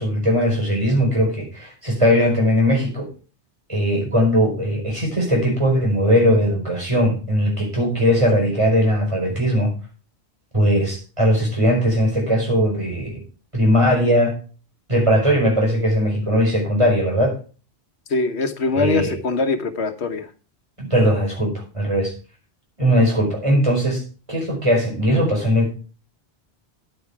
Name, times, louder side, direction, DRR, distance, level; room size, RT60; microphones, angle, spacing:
voice 1, 0.0-3.1 3.7-9.7 10.5-13.2 13.5-14.4 14.9-17.4 18.7-19.2 20.8-22.1 22.8-24.0 24.3-25.7, equal, 30° right, 0 dB, 5.0 m, -19 dB
voice 2, 18.1-20.3, left 4 dB, 85° left, 8 dB, 1.4 m, -23 dB
9.9 x 9.4 x 4.8 m, 0.36 s
omnidirectional pair, 1.1 m